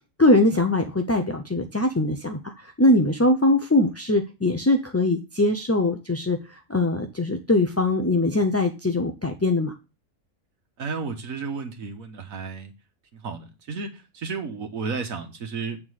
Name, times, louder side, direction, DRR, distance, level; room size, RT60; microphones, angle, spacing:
voice 1, 0.2-9.7, left 2 dB, 20° left, 0.4 m, -22 dB
voice 2, 10.8-12.7 13.1-15.8, right 5 dB, 90° right, 1.7 m, -33 dB
8.7 x 3.7 x 6.3 m
omnidirectional pair, 1.4 m